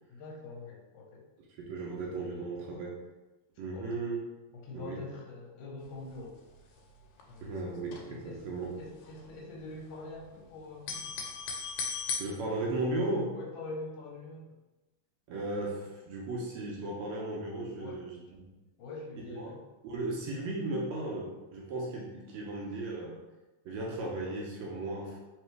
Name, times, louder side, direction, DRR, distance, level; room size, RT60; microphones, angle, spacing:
voice 1, 0.1-1.3 3.7-4.0 4.5-6.4 8.1-8.4 8.8-11.0 13.3-14.5 17.8-18.0 18.8-19.6, left 2 dB, 65° left, -3 dB, 1.5 m, -44 dB
voice 2, 1.6-3.0 3.6-4.2 4.7-5.0 7.4-8.7 12.2-13.4 15.3-18.4 19.3-19.5 19.8-23.2 23.6-25.2, right 2 dB, 75° right, -2 dB, 1.7 m, -36 dB
sound 1, 5.8-6.2 6.5-6.6 6.8-8.4 8.8-10.4 10.7-12.2, left 5 dB, 80° left, 2.1 m, -38 dB
4.6 x 3.1 x 3.2 m, 1.1 s
omnidirectional pair, 3.7 m